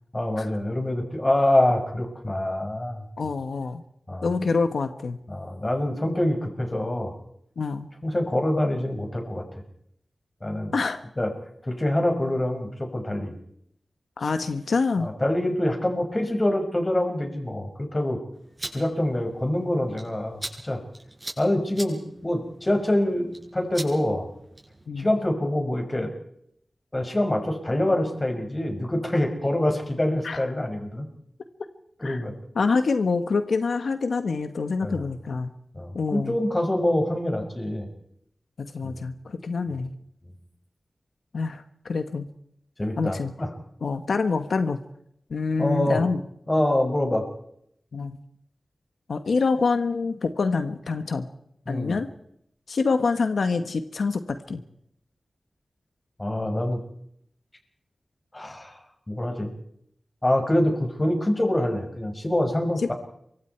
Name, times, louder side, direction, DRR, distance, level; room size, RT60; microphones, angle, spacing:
voice 1, 0.1-3.0 4.1-4.3 5.3-7.1 8.0-9.4 10.4-10.7 11.2-11.3 11.6-13.4 14.2-14.3 15.0-18.2 18.7-20.8 21.4-24.3 25.0-26.1 26.9-31.0 32.0-32.3 34.8-35.1 35.7-37.9 38.8-39.0 40.2-40.3 42.8-43.5 45.6-46.0 46.5-47.2 51.7-52.0 56.2-56.8 58.3-58.8 59.1-59.5 60.2-62.9, left 1 dB, 25° left, 4 dB, 5.9 m, -25 dB
voice 2, 3.2-3.8 4.2-5.2 7.6-7.9 10.7-11.0 14.2-15.1 24.9-25.1 30.2-30.4 32.0-32.2 32.5-35.5 35.9-36.4 38.6-39.9 41.3-42.3 43.0-43.3 43.8-44.8 45.3-46.2 47.9-48.2 49.1-51.3 51.7-52.1 52.7-54.6, left 4 dB, 85° left, 8 dB, 1.5 m, -26 dB
sound 1, 18.3-24.9, right 1 dB, 25° right, 7.5 m, -42 dB
28.5 x 25.0 x 4.7 m, 0.74 s
wide cardioid pair, 85°, 0 cm